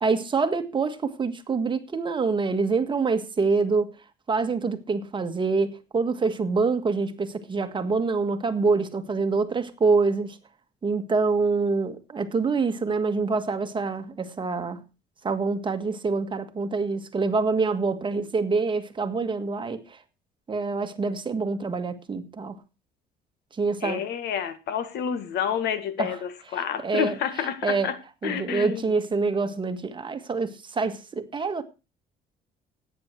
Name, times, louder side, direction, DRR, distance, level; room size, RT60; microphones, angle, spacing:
voice 1, 0.0-3.9 4.3-10.4 10.8-14.8 15.2-19.8 20.5-22.5 23.6-24.0 26.0-26.1 26.8-27.1 27.6-27.9 28.2-31.6, right 4 dB, 30° right, 1.6 m, -26 dB
voice 2, 23.8-28.0 28.2-28.9, left 8 dB, 75° left, 1.9 m, -29 dB
13.5 x 9.6 x 4.5 m
cardioid pair, 110°, 17 cm